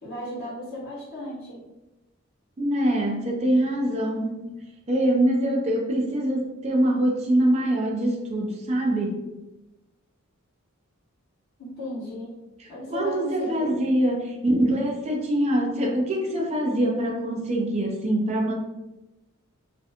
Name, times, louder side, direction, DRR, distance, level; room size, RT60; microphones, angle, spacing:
voice 1, 0.0-1.6 11.6-12.3 12.7-13.7, left 1 dB, 50° left, -7 dB, 1.0 m, -35 dB
voice 2, 2.6-4.5 4.9-9.2 12.6-18.5, right 1 dB, 30° right, 0 dB, 0.4 m, -24 dB
2.4 x 2.2 x 2.8 m, 1.0 s
head